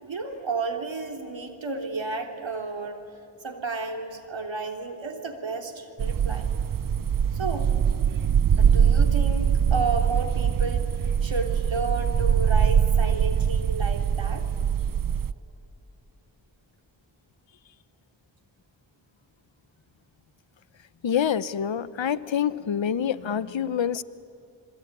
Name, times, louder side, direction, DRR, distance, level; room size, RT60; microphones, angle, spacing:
voice 1, 0.0-3.0 3.4-6.5 7.3-7.7 8.6-10.9 11.2-14.5, right 3 dB, 75° right, 4 dB, 3.2 m, -32 dB
sound 1, 6.0-15.3, right 7 dB, 45° right, 0.6 m, -23 dB
voice 2, 21.0-24.0, left 8 dB, 75° left, 16 dB, 0.9 m, -26 dB
28.0 x 21.5 x 9.7 m, 2.8 s
cardioid pair, 50°, 46 cm